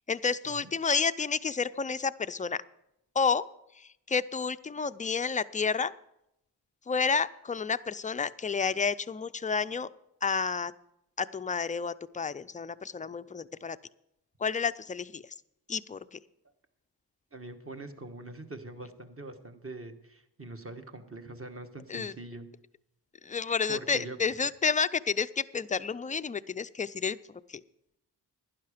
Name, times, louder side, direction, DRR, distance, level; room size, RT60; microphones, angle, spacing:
voice 1, 0.1-2.6 3.2-3.5 3.8-5.9 6.9-9.9 10.2-10.7 11.2-13.8 14.4-15.2 15.7-16.2 21.9-22.1 23.2-27.2 27.5-27.6, left 5 dB, 20° left, 14 dB, 0.3 m, -30 dB
voice 2, 17.3-22.5 23.7-24.2, right 2 dB, 30° right, 6 dB, 1.3 m, -43 dB
11.5 x 10.5 x 5.0 m, 0.83 s
cardioid pair, 65°, 43 cm